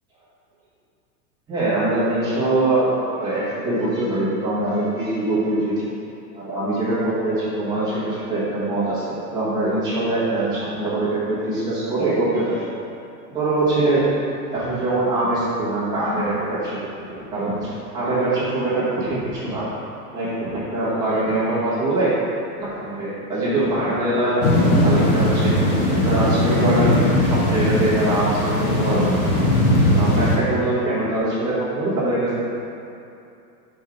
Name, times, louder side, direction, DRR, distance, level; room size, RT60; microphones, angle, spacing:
voice 1, 1.5-2.9 3.1-5.9 6.3-12.6 13.3-14.1 14.5-16.8 17.1-19.7 20.1-22.1 22.6-24.4 24.8-25.5 25.9-29.2 29.9-32.4, right 2 dB, 10° right, -11 dB, 1.1 m, -23 dB
sound 1, 24.4-30.4, left 1 dB, 35° left, 0.9 m, -19 dB
5.3 x 3.7 x 5.8 m, 2.7 s
supercardioid pair, 175°, 47 cm